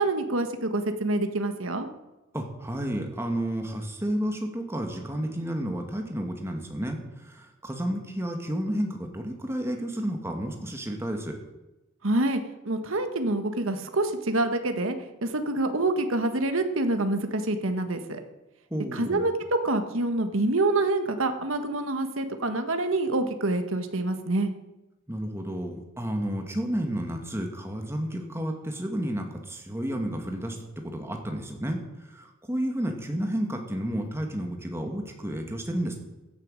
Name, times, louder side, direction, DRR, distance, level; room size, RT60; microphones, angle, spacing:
voice 1, 0.0-1.9 12.0-18.2 18.9-24.5, right 2 dB, 70° right, 7 dB, 1.5 m, -26 dB
voice 2, 2.3-11.4 18.7-19.2 25.1-30.6 30.8-36.0, equal, 10° right, 3 dB, 2.0 m, -31 dB
16.0 x 9.5 x 6.5 m, 1.0 s
head